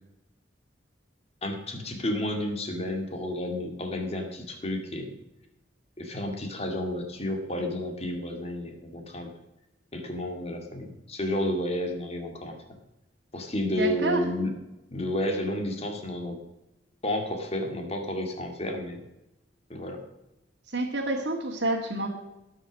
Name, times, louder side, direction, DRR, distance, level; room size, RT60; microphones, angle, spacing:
voice 1, 1.4-5.1 6.0-9.3 9.9-12.6 13.3-14.5 14.9-16.4 17.0-19.0 19.7-20.0, left 1 dB, 35° left, 4 dB, 2.2 m, -31 dB
voice 2, 13.8-14.2 20.7-22.1, right 2 dB, 70° right, -2 dB, 1.9 m, -28 dB
17.5 x 6.5 x 6.4 m, 0.96 s
head